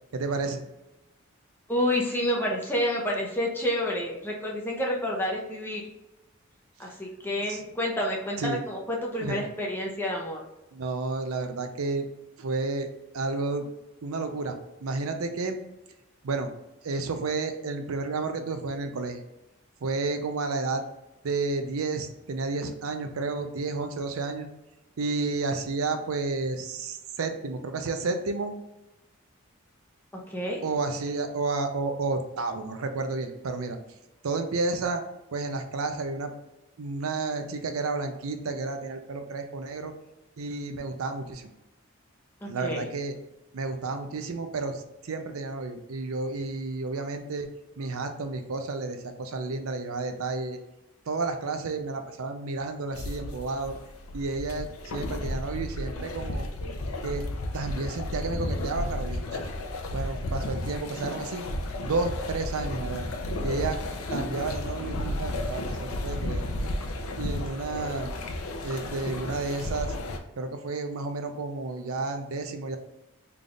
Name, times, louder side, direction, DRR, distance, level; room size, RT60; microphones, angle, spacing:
voice 1, 0.1-0.6 7.5-7.6 8.4-8.6 9.2-9.5 10.7-12.1 12.4-12.9 13.1-13.7 14.0-14.6 14.8-15.6 16.2-16.5 16.8-19.2 19.8-20.8 21.2-24.5 25.0-28.6 30.6-33.8 34.2-35.0 35.3-36.3 36.8-39.9 40.4-41.4 42.5-43.2 43.5-47.5 47.8-50.6 51.1-53.7 54.1-56.5 57.0-57.3 57.5-59.5 59.9-61.4 61.8-63.1 63.4-63.8 64.1-66.4 67.2-68.1 68.6-69.9 70.4-72.8, right 3 dB, 85° right, 7 dB, 0.5 m, -31 dB
voice 2, 1.7-5.8 6.8-10.4 30.3-30.6 42.4-42.9, left 1 dB, 10° left, -2 dB, 0.7 m, -29 dB
sound 1, 52.9-70.2, left 1 dB, 90° left, 0.6 m, -33 dB
3.9 x 3.4 x 2.4 m, 0.96 s
head